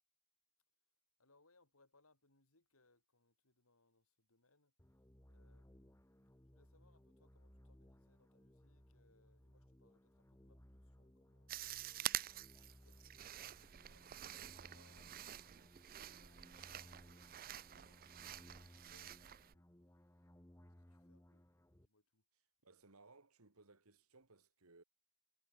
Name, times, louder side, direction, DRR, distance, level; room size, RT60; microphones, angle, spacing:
voice 1, 1.2-4.7 5.3-6.0 6.4-12.3 12.8-15.5 15.9-17.3 17.7-19.7 20.8-21.4 21.8-22.2, left 2 dB, 70° left, 5.8 m, -75 dB
sound 1, 4.8-21.9, equal, 15° left, 1.5 m, -64 dB
sound 2, 11.5-19.5, right 12 dB, 45° right, 0.5 m, -48 dB
voice 2, 22.6-24.8, right 3 dB, 75° right, 2.1 m, -64 dB
head